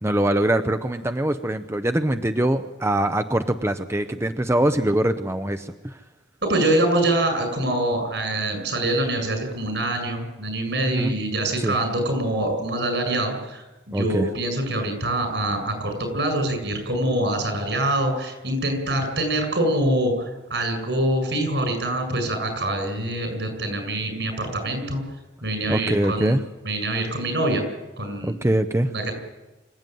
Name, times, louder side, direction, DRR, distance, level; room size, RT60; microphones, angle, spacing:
voice 1, 0.0-6.0 10.8-11.1 11.6-11.8 13.9-14.3 25.7-26.4 28.2-28.9, right 1 dB, 15° right, 8 dB, 0.7 m, -23 dB
voice 2, 6.4-25.0 25.4-26.4 26.6-27.6 28.0-28.3 28.9-29.1, right 1 dB, 75° right, 5 dB, 7.3 m, -25 dB
25.5 x 14.0 x 9.3 m, 1.1 s
head